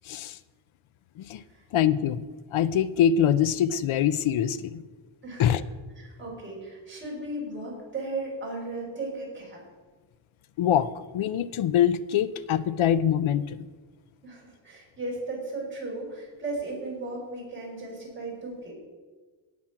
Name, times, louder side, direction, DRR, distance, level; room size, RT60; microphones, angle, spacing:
voice 1, 0.1-0.4 1.2-1.4 1.7-2.3 2.5-4.8 5.4-5.6 10.6-13.7, left 9 dB, 85° left, 16 dB, 0.7 m, -24 dB
voice 2, 5.2-5.6 6.0-9.6 14.2-18.7, right 2 dB, 25° right, -4 dB, 4.8 m, -36 dB
18.0 x 6.0 x 5.9 m, 1.4 s
wide cardioid pair, 160°, 47 cm